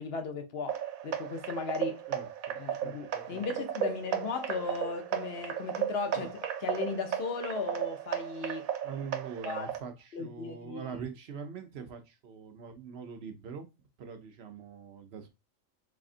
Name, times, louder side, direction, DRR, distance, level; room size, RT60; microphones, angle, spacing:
voice 1, 0.0-2.0 2.6-8.7 9.4-9.7 10.1-11.0, left 4 dB, 55° left, 0.9 m, -36 dB
sound 1, 0.7-9.8, right 9 dB, 85° right, 1.0 m, -35 dB
voice 2, 2.1-3.4 6.1-6.3 8.8-13.7 14.0-15.3, right 6 dB, 55° right, 0.8 m, -43 dB
3.7 x 3.4 x 2.5 m
omnidirectional pair, 1.4 m